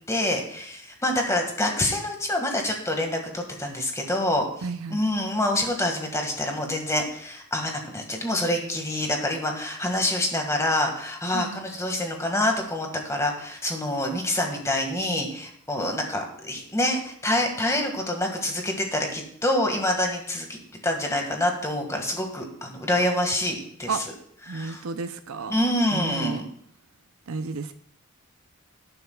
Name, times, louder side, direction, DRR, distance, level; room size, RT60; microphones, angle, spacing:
voice 1, 0.1-4.5 4.9-23.9 24.5-24.8 25.5-26.5, left 1 dB, 15° left, 2 dB, 1.8 m, -26 dB
voice 2, 4.6-5.0 11.3-11.6 23.9-24.0 24.5-25.6 25.9-26.4 27.3-27.7, right 4 dB, 90° right, 9 dB, 0.6 m, -32 dB
18.5 x 9.8 x 2.3 m, 0.64 s
head